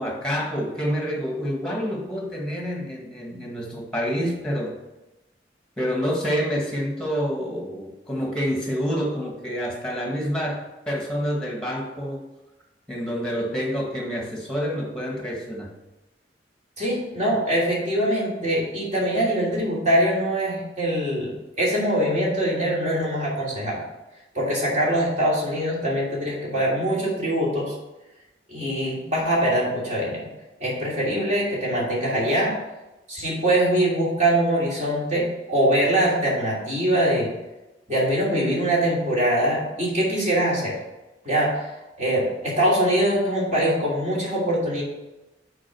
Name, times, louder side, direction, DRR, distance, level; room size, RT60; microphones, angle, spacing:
voice 1, 0.0-4.7 5.8-12.3 12.9-15.7, equal, 5° left, 0 dB, 1.6 m, -28 dB
voice 2, 16.8-23.8 24.3-27.7 28.5-30.3 30.6-32.6 33.1-37.3 37.9-40.8 41.2-41.7 42.0-44.8, right 1 dB, 40° right, -5 dB, 2.8 m, -23 dB
6.2 x 4.7 x 6.1 m, 1.0 s
head